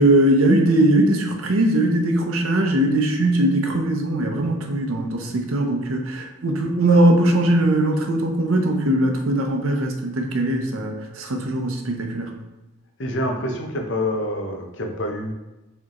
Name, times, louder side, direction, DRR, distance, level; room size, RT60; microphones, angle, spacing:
voice 1, 0.0-12.3, right 1 dB, 85° right, 3 dB, 0.7 m, -20 dB
voice 2, 13.0-15.3, left 1 dB, 60° left, 2 dB, 0.7 m, -26 dB
4.8 x 3.4 x 2.9 m, 1.1 s
head